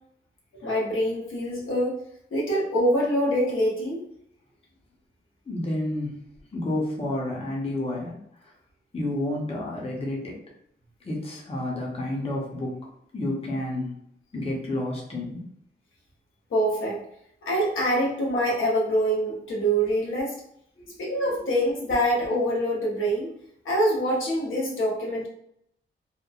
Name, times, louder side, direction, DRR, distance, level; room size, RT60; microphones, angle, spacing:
voice 1, 0.5-1.9 2.3-4.0 16.5-17.0 17.4-20.3 21.0-23.3 23.6-25.3, equal, 85° left, -4 dB, 0.8 m, -25 dB
voice 2, 5.5-6.1 6.5-8.5 8.9-10.4 11.0-12.8 13.1-13.9 14.3-15.5 20.8-21.5, left 1 dB, 30° left, -2 dB, 0.7 m, -30 dB
2.9 x 2.1 x 2.4 m, 0.72 s
cardioid pair, 85°, 20 cm